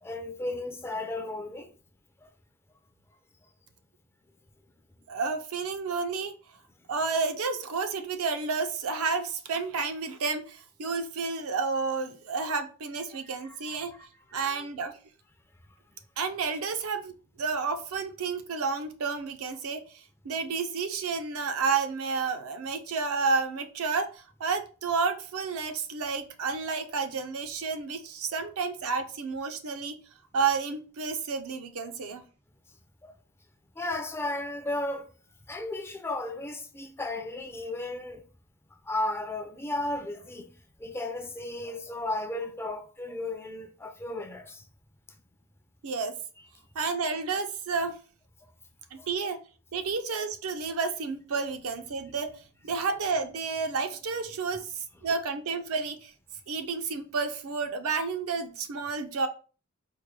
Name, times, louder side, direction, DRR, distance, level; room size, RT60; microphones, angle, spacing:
voice 1, 0.0-1.7 10.9-11.0 13.3-13.8 33.0-33.1 33.8-35.1 35.5-38.2 38.8-40.5 40.8-44.6 49.0-49.1, left 2 dB, 10° left, 0.4 m, -34 dB
voice 2, 5.1-6.4 6.9-13.9 14.3-15.0 16.2-30.0 30.3-32.2 45.8-46.1 46.8-48.0 48.9-49.4 49.7-56.1 56.5-59.3, right 4 dB, 75° right, 0.5 m, -31 dB
4.4 x 2.2 x 3.1 m
head